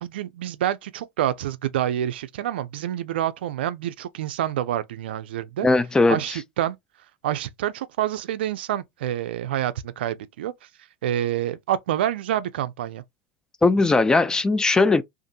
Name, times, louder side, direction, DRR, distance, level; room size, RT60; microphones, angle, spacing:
voice 1, 0.0-5.7 6.1-6.8 7.2-10.5 11.0-13.0, right 11 dB, 80° right, 0.3 m, -27 dB
voice 2, 5.6-6.4 13.6-15.0, left 3 dB, 15° left, 0.3 m, -19 dB
2.6 x 2.5 x 2.5 m
hypercardioid pair, 100°, 6 cm